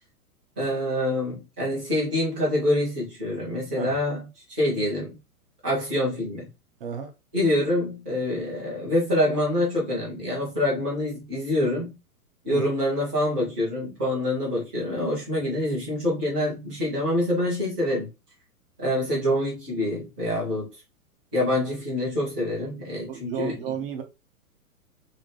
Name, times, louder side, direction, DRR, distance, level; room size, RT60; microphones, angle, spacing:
voice 1, 0.6-5.2 5.6-6.5 7.3-12.0 12.4-18.1 18.8-20.7 21.3-23.6, left 1 dB, 5° right, 0.3 m, -26 dB
voice 2, 6.8-7.1 12.5-12.7 23.0-24.0, right 8 dB, 40° right, 0.7 m, -32 dB
3.4 x 2.7 x 3.2 m
figure-of-eight pair, 110°, 45 cm